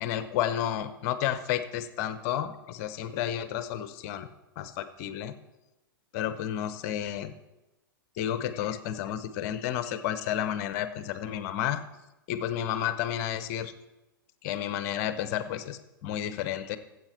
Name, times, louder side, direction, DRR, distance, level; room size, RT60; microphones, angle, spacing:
voice 1, 0.0-4.3 4.6-5.3 6.1-7.3 8.2-11.8 12.3-13.7 14.4-16.8, left 10 dB, 45° left, 13 dB, 0.9 m, -31 dB
14.5 x 8.0 x 4.5 m, 0.99 s
figure-of-eight pair, 105°, 12 cm